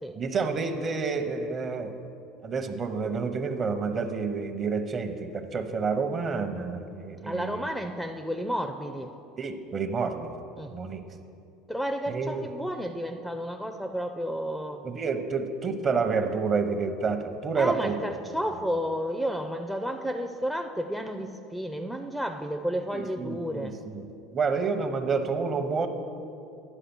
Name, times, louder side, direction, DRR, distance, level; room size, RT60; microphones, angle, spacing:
voice 1, 0.1-1.9 2.4-7.7 9.4-10.3 10.7-11.0 12.1-12.5 14.8-18.0 22.9-25.9, right 5 dB, 35° right, 7 dB, 0.8 m, -29 dB
voice 2, 7.2-9.1 10.6-10.7 11.7-14.8 17.5-23.8, equal, ahead, 7 dB, 0.5 m, -32 dB
9.9 x 5.0 x 6.0 m, 2.5 s
hypercardioid pair, 90°, 0 cm